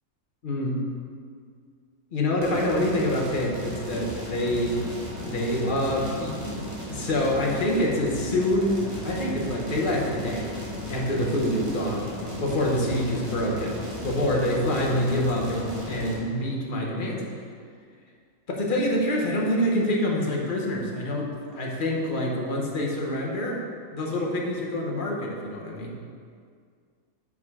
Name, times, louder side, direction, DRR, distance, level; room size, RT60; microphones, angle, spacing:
voice 1, 0.4-0.9 2.1-4.7 5.2-6.6 6.9-10.5 10.9-12.1 12.4-17.2 18.5-23.6 23.9-26.0, left 1 dB, 40° left, -2 dB, 1.0 m, -26 dB
sound 1, 2.4-16.1, equal, 25° right, 1.6 m, -35 dB
5.4 x 5.3 x 4.7 m, 2.1 s
omnidirectional pair, 1.5 m